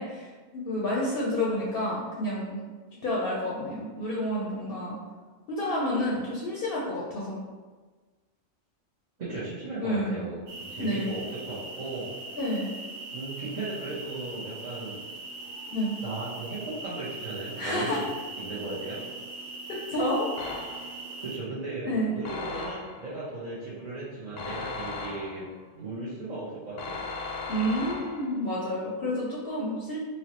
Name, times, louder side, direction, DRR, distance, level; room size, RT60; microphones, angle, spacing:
voice 1, 0.0-2.6 3.0-5.0 5.5-7.4 9.8-10.2 10.8-11.1 12.3-12.7 15.7-15.9 17.6-18.0 19.9-20.3 21.8-22.1 27.5-30.0, left 1 dB, 60° left, -6 dB, 0.7 m, -29 dB
voice 2, 9.2-12.1 13.1-15.0 16.0-18.1 18.4-19.0 21.2-25.5 25.7-27.0, right 2 dB, 40° right, -9 dB, 0.7 m, -36 dB
sound 1, 10.5-21.4, right 2 dB, 70° right, 1.0 m, -41 dB
sound 2, 20.4-21.1 22.2-23.1 24.4-25.6 26.8-28.4, left 3 dB, 85° left, 1.0 m, -37 dB
4.1 x 2.0 x 2.9 m, 1.4 s
omnidirectional pair, 1.2 m